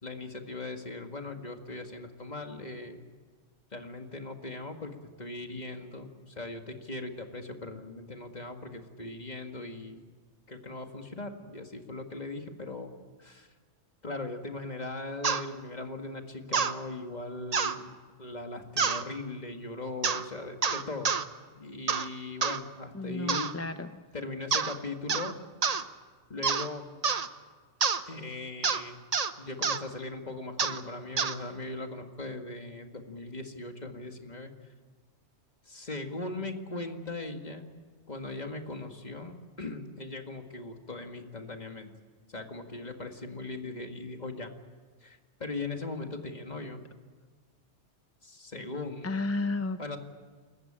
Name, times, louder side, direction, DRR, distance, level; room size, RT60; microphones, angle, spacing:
voice 1, 0.0-3.0 3.7-10.0 10.5-12.9 13.2-13.5 14.0-21.1 21.5-23.5 24.1-25.3 26.3-26.8 28.1-29.0 29.4-34.5 35.7-37.7 38.1-41.9 42.3-44.5 45.0-46.8 48.2-49.2 49.8-50.0, left 2 dB, 40° left, 5 dB, 2.0 m, -39 dB
sound 1, 15.2-15.4 16.5-16.7 17.5-17.8 18.8-19.0 20.0-20.2 20.6-21.2 21.9-22.1 22.4-22.6 23.3-23.5 24.5-24.8 25.1-25.3 25.6-25.8 26.4-26.7 27.0-27.3 27.8-28.0 28.6-28.8 29.1-29.3 29.6-29.8 30.6-30.8 31.2-31.4, right 5 dB, 40° right, 0.8 m, -27 dB
voice 2, 22.9-23.9 49.0-49.8, left 3 dB, 15° left, 9 dB, 0.6 m, -32 dB
28.5 x 14.5 x 8.8 m, 1.5 s
omnidirectional pair, 1.2 m